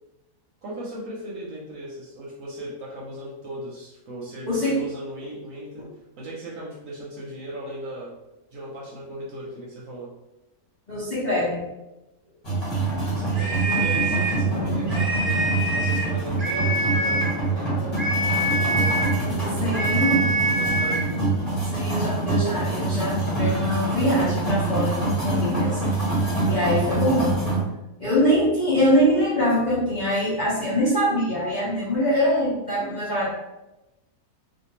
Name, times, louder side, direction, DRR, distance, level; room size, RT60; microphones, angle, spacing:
voice 1, 0.6-5.8 6.2-8.1 8.5-10.1 13.1-21.2 21.5-21.6, right 1 dB, 65° right, -5 dB, 0.9 m, -37 dB
voice 2, 4.5-4.8 10.9-11.6 13.6-13.8 19.6-20.2 21.7-25.8 26.5-27.4 28.0-33.3, equal, 45° left, -10 dB, 0.6 m, -23 dB
sound 1, 12.4-27.6, right 3 dB, 30° left, 1.1 m, -25 dB
sound 2, 13.3-14.4 14.9-16.1 16.4-17.4 18.0-19.2 19.7-21.1, right 1 dB, 35° right, 0.7 m, -25 dB
2.6 x 2.4 x 2.8 m, 0.96 s
omnidirectional pair, 1.6 m